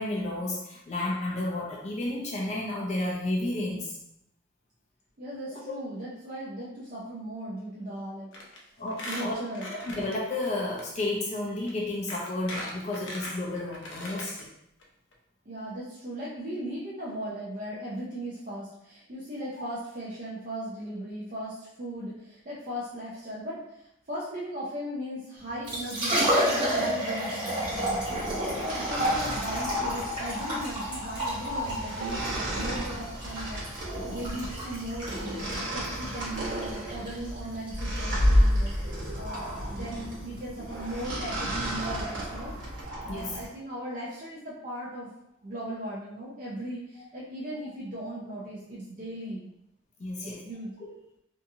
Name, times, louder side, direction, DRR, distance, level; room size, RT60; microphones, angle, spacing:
voice 1, 0.0-4.0 5.5-5.6 8.8-9.4 9.9-14.5 43.1-43.4 50.0-50.4 50.8-50.9, left 2 dB, 35° left, -2 dB, 0.4 m, -32 dB
voice 2, 5.2-8.3 9.0-9.8 15.5-33.6 33.9-35.1 35.5-42.5 43.0-45.1 45.4-49.5 50.2-50.8, right 1 dB, 45° right, -7 dB, 0.5 m, -38 dB
Squeak, 8.3-8.6 8.9-10.5 10.8-10.9 11.7-11.8 12.1-14.4 14.8-14.9 15.1-15.2, left 1 dB, 80° left, 0.6 m, -39 dB
Liquid, 25.5-42.8, equal, 25° right, 1.3 m, -32 dB
sound 1, 27.6-43.5, equal, 90° right, 1.0 m, -31 dB
2.7 x 2.4 x 2.6 m, 0.81 s
head